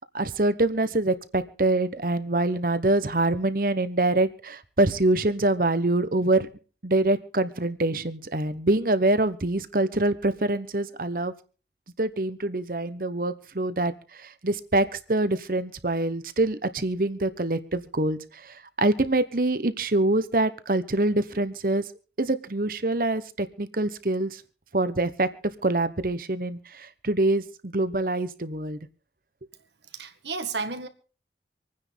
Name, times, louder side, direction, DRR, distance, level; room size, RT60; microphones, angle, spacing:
voice 1, 0.1-6.5 6.8-11.3 12.0-13.9 14.2-21.8 22.2-24.4 24.7-25.3 25.6-28.8, right 2 dB, 50° right, 1.1 m, -25 dB
voice 2, 29.9-30.9, right 4 dB, 80° right, 1.8 m, -32 dB
26.5 x 9.8 x 3.5 m
head